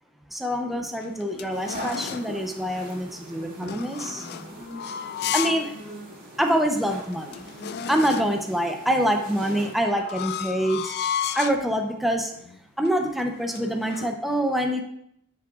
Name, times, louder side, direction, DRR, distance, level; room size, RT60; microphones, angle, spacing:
voice 1, 0.3-4.3 5.3-5.7 6.4-7.5 7.9-10.9 11.3-12.3 12.8-14.8, equal, ahead, 3 dB, 0.6 m, -25 dB
sound 1, 0.7-2.3 3.6-5.7 6.1-6.2 6.8-6.9 7.1-8.5 9.4-11.7 12.3-12.6 12.9-14.2, left 8 dB, 50° left, 0.4 m, -33 dB
sound 2, 1.5-9.7, equal, 40° right, 2.6 m, -41 dB
10.0 x 7.3 x 2.4 m, 0.73 s
head